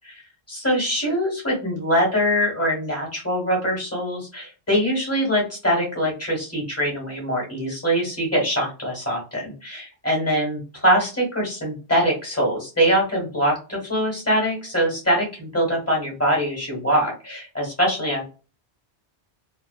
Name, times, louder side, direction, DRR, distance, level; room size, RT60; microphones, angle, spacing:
voice 1, 0.5-18.2, equal, 15° left, -2 dB, 1.3 m, -23 dB
2.6 x 2.2 x 2.3 m, 0.33 s
omnidirectional pair, 1.1 m